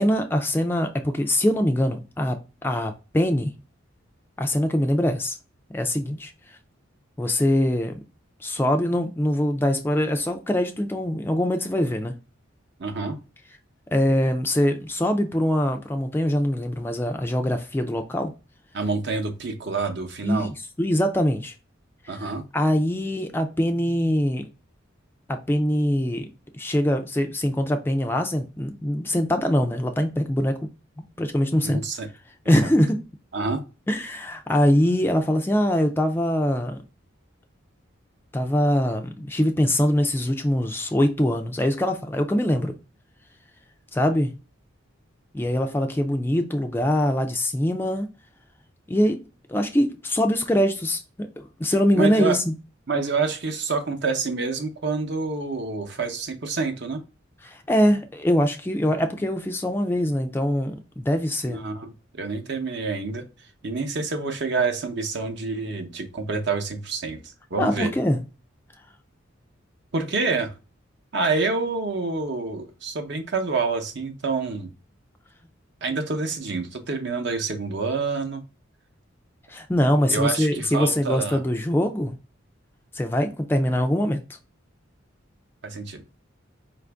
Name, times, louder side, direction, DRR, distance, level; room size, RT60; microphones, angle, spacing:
voice 1, 0.0-3.5 4.4-5.4 5.7-6.6 7.2-7.9 8.4-12.1 13.9-18.3 20.2-21.5 22.2-24.5 25.3-26.3 26.5-30.6 31.2-31.8 32.5-33.0 33.9-36.8 38.3-42.7 43.9-44.3 45.3-48.1 48.9-49.2 49.5-52.5 57.4-61.6 67.6-68.2 79.5-82.2 82.9-84.2, left 1 dB, 10° left, 0.3 m, -23 dB
voice 2, 12.8-13.2 18.7-20.5 22.1-22.4 31.6-32.1 32.6-32.7 33.3-33.6 51.9-52.4 52.9-57.0 61.5-63.3 63.6-67.9 69.9-70.5 71.1-74.7 75.8-78.4 80.1-81.4 85.6-86.0, right 4 dB, 55° right, 0.7 m, -27 dB
4.9 x 2.5 x 3.4 m
head